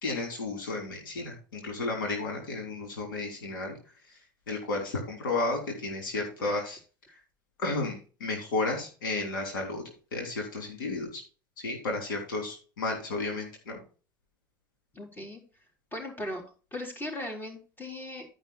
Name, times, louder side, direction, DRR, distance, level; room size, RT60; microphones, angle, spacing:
voice 1, 0.0-3.8 4.5-6.8 7.6-9.8 10.1-11.2 11.6-13.8, left 2 dB, 85° left, 1 dB, 3.4 m, -32 dB
voice 2, 14.9-15.4 15.9-16.4 16.7-18.3, left 1 dB, 20° left, 0 dB, 4.0 m, -38 dB
12.0 x 5.4 x 4.3 m, 0.36 s
hypercardioid pair, 75°, 11 cm